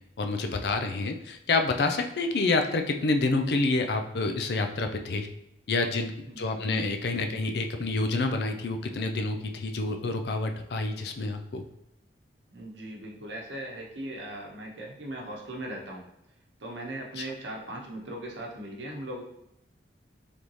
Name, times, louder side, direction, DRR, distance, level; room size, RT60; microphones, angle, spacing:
voice 1, 0.2-5.3 5.7-6.1 6.4-11.6 17.2-17.3, left 3 dB, 60° left, 5 dB, 0.4 m, -28 dB
voice 2, 6.3-6.8 7.2-7.4 12.5-16.0 16.6-19.2, right 1 dB, 75° right, -1 dB, 0.9 m, -39 dB
3.4 x 3.1 x 3.9 m, 0.81 s
head